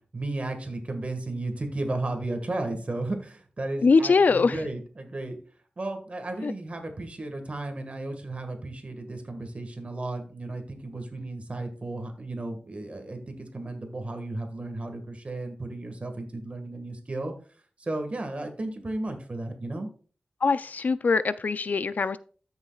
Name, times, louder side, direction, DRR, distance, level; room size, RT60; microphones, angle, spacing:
voice 1, 0.1-5.4 5.8-17.3 17.8-19.9, right 2 dB, 45° right, 1.7 m, -34 dB
voice 2, 3.8-4.6 6.4-6.5 20.4-22.2, left 4 dB, 65° left, 0.4 m, -22 dB
13.5 x 6.4 x 2.4 m
wide cardioid pair, 75°, 3 cm